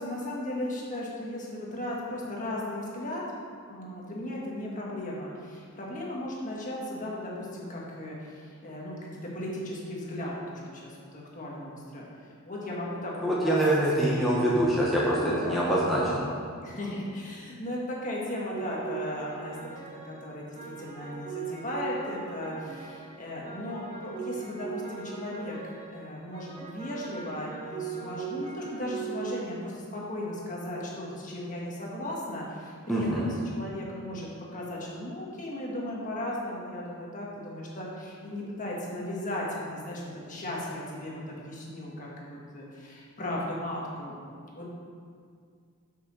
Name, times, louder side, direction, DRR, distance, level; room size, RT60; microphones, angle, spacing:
voice 1, 0.0-3.2 3.7-12.0 12.4-13.6 13.9-14.4 15.1-15.7 16.6-44.2 44.5-44.7, left 1 dB, 35° left, -4 dB, 1.6 m, -36 dB
voice 2, 13.2-16.2 32.9-33.3, right 1 dB, ahead, -7 dB, 1.0 m, -25 dB
sound 1, 18.5-23.2 23.4-29.6, right 6 dB, 30° right, 1.5 m, -39 dB
6.9 x 5.9 x 6.3 m, 2.2 s
head